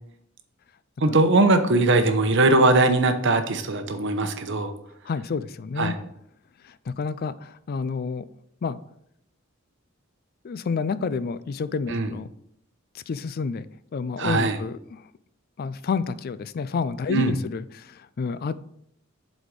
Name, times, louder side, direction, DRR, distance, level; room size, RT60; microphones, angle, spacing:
voice 1, 1.0-4.7 5.8-5.9 11.9-12.1 14.2-14.6 17.1-17.4, right 2 dB, 65° right, 7 dB, 0.8 m, -20 dB
voice 2, 5.0-6.0 6.6-8.3 8.6-8.8 10.4-12.3 12.9-13.7 13.9-15.0 15.6-18.6, left 5 dB, 50° left, 15 dB, 0.4 m, -29 dB
7.9 x 4.2 x 5.1 m, 0.74 s
head